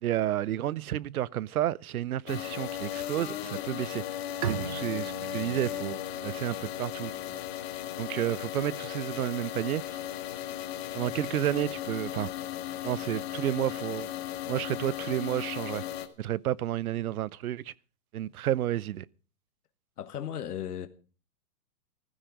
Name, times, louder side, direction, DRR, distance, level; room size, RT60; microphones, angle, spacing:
voice 1, 0.0-4.0 4.4-7.4 8.0-10.0 10.9-12.3 12.8-14.1 14.5-15.8 16.2-17.7 18.1-19.0, right 12 dB, 70° right, 0.7 m, -31 dB
sound 1, 2.3-16.1, left 12 dB, 45° left, 1.7 m, -36 dB
Bowed string instrument, 4.4-7.9, right 9 dB, 25° right, 0.6 m, -40 dB
voice 2, 20.0-20.9, left 9 dB, 85° left, 1.5 m, -35 dB
15.0 x 13.0 x 5.2 m
hypercardioid pair, 165°, 45 cm